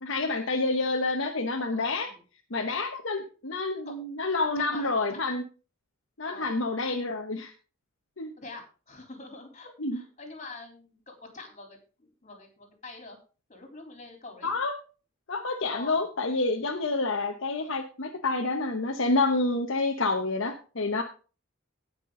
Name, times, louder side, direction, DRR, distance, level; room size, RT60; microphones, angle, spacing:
voice 1, 0.0-2.1 2.5-5.4 6.2-7.5 8.2-8.3 9.8-10.0 14.4-14.7 15.3-21.0, left 3 dB, 65° left, 3 dB, 1.1 m, -28 dB
voice 2, 1.6-2.2 3.9-4.0 4.6-5.2 6.3-6.6 8.4-13.2 13.5-14.5 15.7-16.0, left 3 dB, 35° left, 3 dB, 3.6 m, -45 dB
18.0 x 6.1 x 3.8 m, 0.35 s
head